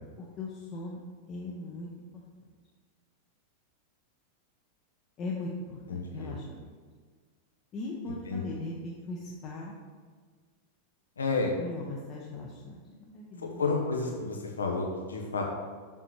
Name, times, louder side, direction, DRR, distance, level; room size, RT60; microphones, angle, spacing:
voice 1, 0.4-1.0 1.3-2.2 5.2-6.7 7.7-9.7 11.6-12.8 13.1-13.6, left 2 dB, 35° left, -2 dB, 0.8 m, -39 dB
voice 2, 5.9-6.4 8.3-8.4 11.2-11.6 13.6-15.4, left 3 dB, 70° left, 1 dB, 0.9 m, -30 dB
6.2 x 5.5 x 3.1 m, 1.6 s
figure-of-eight pair, 90°, 0 cm